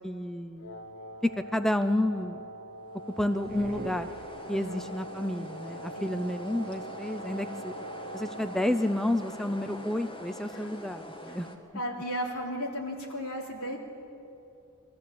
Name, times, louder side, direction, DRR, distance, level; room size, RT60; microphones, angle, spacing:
voice 1, 0.0-0.8 1.2-2.4 3.2-4.1 4.5-7.7 8.1-11.5, left 1 dB, ahead, 8 dB, 0.5 m, -30 dB
Wind instrument woodwind instrument, 0.6-8.9, right 1 dB, 60° left, 1.3 m, -43 dB
sound 1, 2.9-11.6, equal, 25° left, 1.6 m, -45 dB
sound 2, 3.4-4.9, right 1 dB, 40° right, 1.1 m, -43 dB
voice 2, 4.5-4.9 5.9-6.1 10.5-10.7 11.3-11.4 11.7-13.8, equal, 85° left, -1 dB, 3.4 m, -35 dB
23.0 x 14.0 x 8.6 m, 2.7 s
head